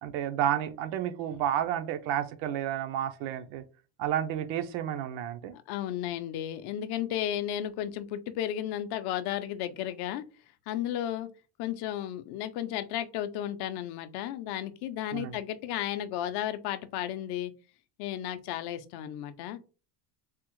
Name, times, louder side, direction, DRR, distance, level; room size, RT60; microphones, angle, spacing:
voice 1, 0.0-3.6 4.0-5.5 15.1-15.4, right 10 dB, 70° right, 0.6 m, -31 dB
voice 2, 5.5-10.2 10.7-11.3 11.6-17.5 18.0-19.6, left 11 dB, 55° left, 0.5 m, -33 dB
3.5 x 2.0 x 3.0 m
cardioid pair, 135°, 50 cm